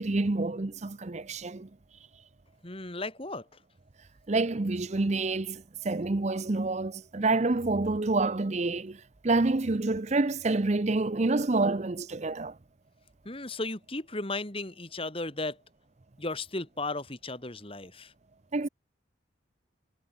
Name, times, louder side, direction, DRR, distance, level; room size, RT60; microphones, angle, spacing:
voice 1, 0.0-1.7 4.3-12.6 18.5-18.7, right 3 dB, 35° right, 0.6 m, -28 dB
voice 2, 2.6-3.5 13.2-15.6 16.2-18.1, left 2 dB, 30° left, 2.3 m, -35 dB
head